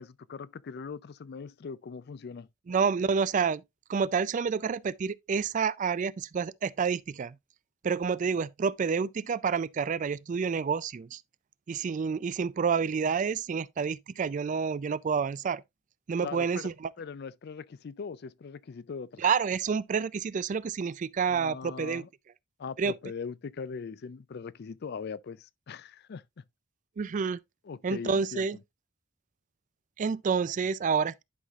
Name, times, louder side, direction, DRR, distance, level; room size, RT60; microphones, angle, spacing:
voice 1, 0.0-2.5 16.2-16.7 17.0-19.2 21.3-22.1 22.6-26.4 27.6-28.5, left 5 dB, 55° left, 0.4 m, -40 dB
voice 2, 2.7-3.6 3.9-7.3 7.8-11.2 11.7-15.6 16.1-16.9 19.2-22.0 22.8-22.9 27.0-27.4 27.8-28.6 30.0-31.2, right 6 dB, 40° right, 0.3 m, -29 dB
11.0 x 5.7 x 2.4 m
head